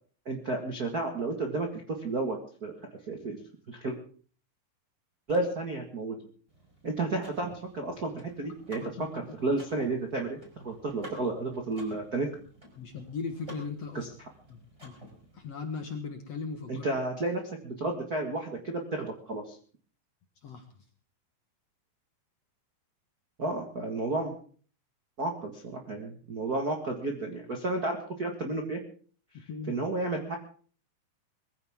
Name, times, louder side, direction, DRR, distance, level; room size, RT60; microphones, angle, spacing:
voice 1, 0.2-1.7 2.0-2.7 3.1-3.4 3.7-3.9 5.3-6.1 6.8-8.8 9.1-12.3 13.9-14.1 16.7-19.6 23.4-24.3 25.2-28.8 29.7-30.4, right 2 dB, 90° right, 3 dB, 0.8 m, -32 dB
Car / Mechanisms, 6.5-15.4, right 1 dB, 5° right, 5.3 m, -51 dB
voice 2, 8.7-9.1 12.8-14.1 14.5-14.9 15.3-16.8 20.4-20.7 29.5-29.8, left 5 dB, 60° left, 5 dB, 1.8 m, -38 dB
22.0 x 15.0 x 3.7 m, 0.43 s
omnidirectional pair, 4.9 m